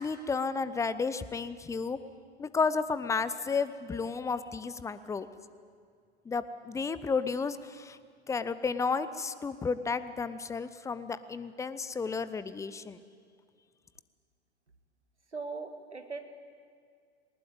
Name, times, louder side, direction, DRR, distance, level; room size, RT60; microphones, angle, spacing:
voice 1, 0.0-2.0 2.4-5.3 6.3-8.0 8.3-13.0, left 5 dB, 10° left, 14 dB, 0.7 m, -32 dB
voice 2, 15.3-16.2, right 4 dB, 90° right, 7 dB, 1.8 m, -39 dB
19.5 x 19.5 x 9.0 m, 2.1 s
figure-of-eight pair, 95°, 33 cm